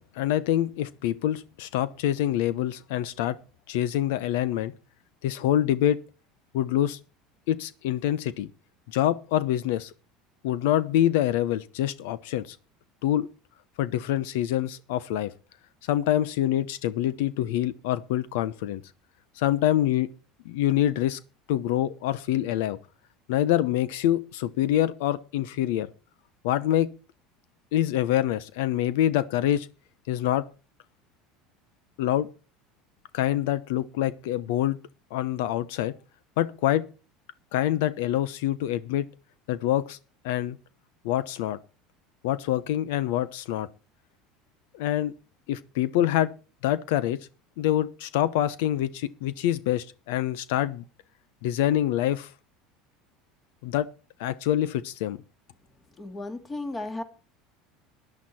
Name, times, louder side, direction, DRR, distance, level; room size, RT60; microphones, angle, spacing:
voice 1, 0.0-3.4 3.7-4.7 5.2-6.0 6.5-7.0 7.5-8.5 8.9-9.9 10.4-12.6 13.0-13.3 13.8-15.3 15.8-18.8 19.4-20.1 20.4-21.2 21.5-22.8 23.3-25.9 26.4-26.9 27.7-29.7 30.1-30.4 32.0-32.3 33.1-34.8 35.1-35.9 36.4-36.8 37.5-39.1 39.5-40.0 40.2-40.6 41.0-41.6 42.2-43.7 44.7-45.1 45.5-46.3 46.6-47.2 47.6-50.8 51.4-52.3 53.6-53.9 54.2-55.2, left 12 dB, 85° left, 0.8 m, -25 dB
voice 2, 55.9-57.0, left 2 dB, 20° left, 2.2 m, -34 dB
14.0 x 11.0 x 4.4 m
cardioid pair, 145°, 0 cm